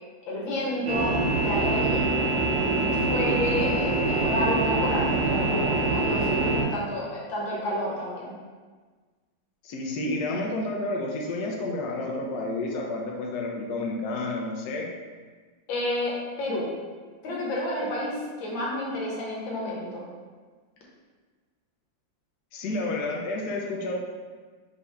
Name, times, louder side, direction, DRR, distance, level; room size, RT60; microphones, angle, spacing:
voice 1, 0.3-1.2 1.4-2.0 3.1-8.3 15.7-16.7 17.2-20.1, left 1 dB, 85° left, -4 dB, 1.8 m, -30 dB
sound 1, 0.9-6.6, right 2 dB, 85° right, 1.6 m, -24 dB
voice 2, 9.6-14.9 22.5-24.0, left 2 dB, 70° left, 0 dB, 1.0 m, -30 dB
5.3 x 2.7 x 3.5 m, 1.4 s
omnidirectional pair, 2.1 m